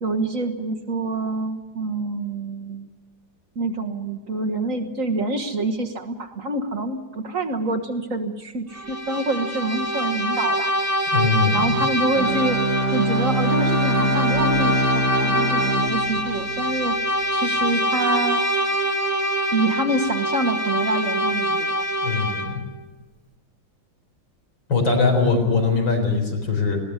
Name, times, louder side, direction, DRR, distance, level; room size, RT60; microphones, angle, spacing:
voice 1, 0.0-2.9 3.6-10.7 11.5-12.6 12.9-17.0 17.3-18.5 19.5-21.8, right 2 dB, 45° right, 3 dB, 1.7 m, -26 dB
Bowed string instrument, 8.7-22.6, equal, 10° right, 1.3 m, -24 dB
voice 2, 11.1-11.6 22.0-22.6 24.7-26.8, left 4 dB, 80° left, 2 dB, 5.1 m, -21 dB
Bowed string instrument 2, 12.1-17.1, equal, 65° right, 3.2 m, -24 dB
20.5 x 17.0 x 9.7 m, 1.2 s
omnidirectional pair, 2.1 m